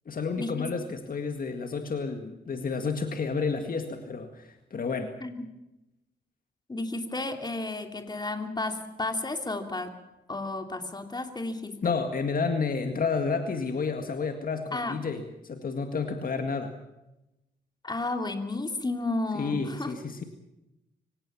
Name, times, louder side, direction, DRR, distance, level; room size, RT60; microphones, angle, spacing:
voice 1, 0.1-5.1 11.8-16.7 19.3-20.2, left 5 dB, 50° left, 6 dB, 2.0 m, -30 dB
voice 2, 6.7-9.9 10.3-11.8 14.7-15.0 17.8-19.9, left 2 dB, 20° left, 6 dB, 3.0 m, -32 dB
24.5 x 17.0 x 7.2 m, 0.94 s
cardioid pair, 85°, 19 cm